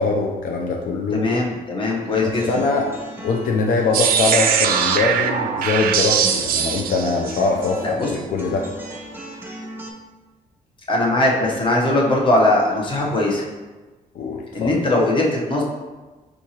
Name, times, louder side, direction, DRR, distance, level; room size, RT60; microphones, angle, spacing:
voice 1, 0.0-1.3 2.5-2.9 3.2-8.7 14.1-14.7, left 3 dB, 70° left, 0 dB, 0.5 m, -22 dB
voice 2, 1.1-2.5 7.8-8.1 10.9-13.4 14.5-15.6, left 2 dB, 35° left, -2 dB, 0.9 m, -20 dB
sound 1, 2.0-9.9, right 1 dB, 15° right, 0.7 m, -37 dB
sound 2, 3.9-7.7, right 7 dB, 85° right, 0.4 m, -21 dB
4.5 x 3.8 x 2.9 m, 1.3 s
cardioid pair, 130°, 15 cm